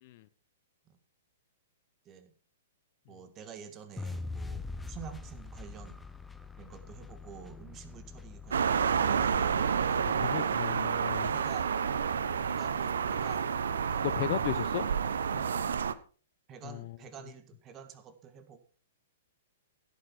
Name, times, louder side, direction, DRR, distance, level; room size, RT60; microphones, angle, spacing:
voice 1, 3.1-6.0 6.6-10.6 11.3-11.8 12.4-13.6 13.8-14.8 16.5-18.6, right 8 dB, 25° right, 9 dB, 2.0 m, -48 dB
sound 1, 4.0-10.1, left 3 dB, 5° left, 0.8 m, -43 dB
sound 2, 8.5-15.9, right 7 dB, 60° right, 0.9 m, -29 dB
voice 2, 10.1-11.3 14.2-14.9 16.6-17.0, left 15 dB, 45° left, 15 dB, 0.8 m, -35 dB
15.5 x 9.3 x 4.5 m, 0.41 s
figure-of-eight pair, 110°, 0 cm